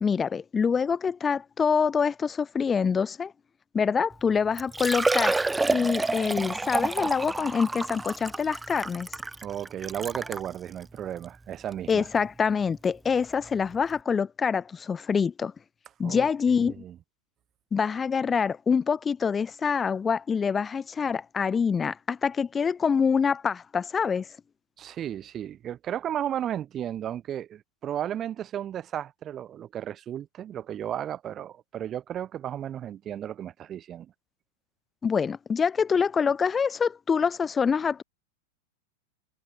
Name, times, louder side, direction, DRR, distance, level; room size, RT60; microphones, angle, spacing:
voice 1, 0.0-3.3 3.7-5.4 5.7-9.1 11.9-15.5 16.0-16.8 17.7-24.3 35.0-38.0, left 6 dB, 20° left, 1.6 m, -25 dB
Liquid, 4.1-4.2 4.6-10.5 11.2-11.3 11.7-11.8 13.5-13.6 13.7-13.8, right 2 dB, 10° right, 1.3 m, -29 dB
voice 2, 9.4-12.1 16.0-17.0 24.8-34.1, right 10 dB, 30° right, 4.0 m, -34 dB
figure-of-eight pair, 90°, 0 cm